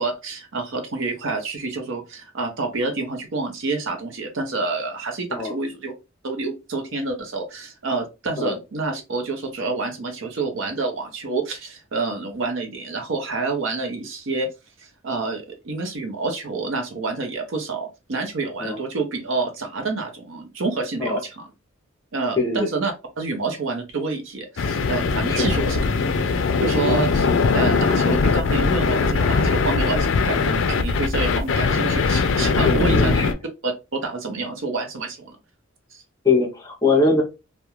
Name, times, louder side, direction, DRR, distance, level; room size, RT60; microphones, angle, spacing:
voice 1, 0.0-5.9 6.2-14.5 14.8-21.5 22.1-25.8 26.6-33.2 33.6-35.3 35.9-36.0, right 3 dB, 65° right, 4 dB, 0.6 m, -28 dB
voice 2, 22.4-22.7 25.3-25.5 26.9-27.0 32.6-33.3 36.2-37.2, left 3 dB, 15° left, 1 dB, 0.7 m, -21 dB
sound 1, 24.6-33.3, left 4 dB, 65° left, 0.4 m, -20 dB
2.3 x 2.1 x 2.9 m, 0.26 s
head